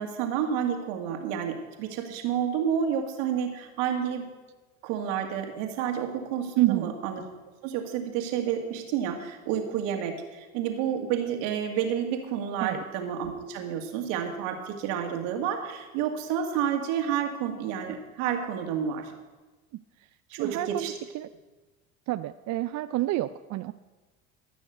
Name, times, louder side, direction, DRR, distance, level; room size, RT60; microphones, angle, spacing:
voice 1, 0.0-4.3 4.8-7.2 7.6-19.1 20.4-20.9, right 8 dB, 70° right, 4 dB, 2.2 m, -30 dB
voice 2, 6.6-6.9 12.6-12.8 20.4-21.3 22.1-23.7, right 16 dB, 45° right, 12 dB, 0.5 m, -29 dB
14.5 x 6.4 x 8.1 m, 1.2 s
hypercardioid pair, 80°, 39 cm